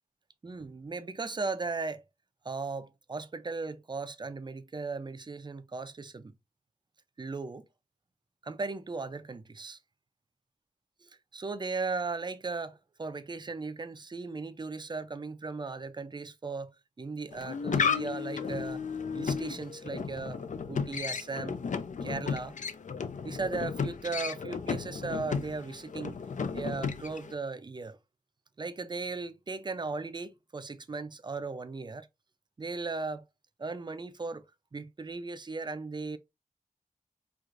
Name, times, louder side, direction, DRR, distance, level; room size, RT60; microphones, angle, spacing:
voice 1, 0.4-2.0 2.4-6.3 7.2-7.7 8.4-9.8 11.0-18.8 19.1-20.4 20.7-21.6 22.0-22.6 23.2-26.2 26.5-28.0 28.6-32.1 32.6-33.2 33.6-34.4 34.7-36.2, right 4 dB, 30° right, 0.5 m, -37 dB
sound 1, 17.3-27.3, left 6 dB, 60° left, 0.5 m, -34 dB
4.6 x 2.5 x 2.5 m
wide cardioid pair, 90°, 14 cm